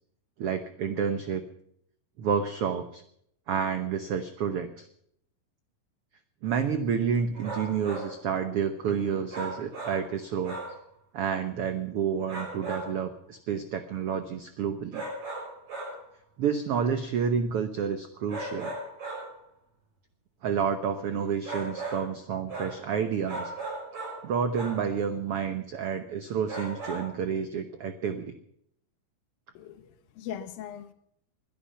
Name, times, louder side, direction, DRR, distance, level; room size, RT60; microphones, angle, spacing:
voice 1, 0.4-1.4 2.2-3.0 3.5-4.9 6.4-10.6 11.1-15.1 16.4-18.7 20.4-23.5 24.2-28.4, right 7 dB, 85° right, 9 dB, 1.3 m, -29 dB
sound 1, 7.3-8.1 9.3-10.1 10.4-10.8 12.3-13.0 14.9-16.0 18.3-19.4 21.4-22.1 22.5-22.8 23.3-24.3 24.5-24.9 26.5-27.1, right 2 dB, 50° right, 7.1 m, -37 dB
voice 2, 29.5-30.9, left 9 dB, 90° left, 7 dB, 3.0 m, -40 dB
21.5 x 12.0 x 5.7 m, 0.70 s
omnidirectional pair, 4.0 m